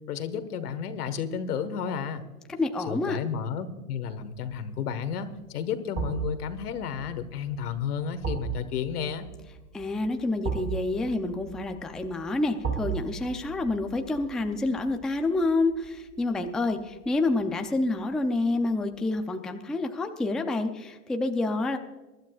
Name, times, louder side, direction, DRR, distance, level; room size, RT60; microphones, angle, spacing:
voice 1, 0.1-2.3 2.9-9.3, left 7 dB, 80° left, 10 dB, 1.6 m, -32 dB
voice 2, 2.5-3.2 9.7-21.8, left 2 dB, ahead, 5 dB, 0.5 m, -28 dB
sound 1, 4.2-4.5 5.9-16.9 17.3-17.4, right 6 dB, 30° right, 4.0 m, -37 dB
22.5 x 12.0 x 2.4 m, 1.2 s
hypercardioid pair, 120°, 45 cm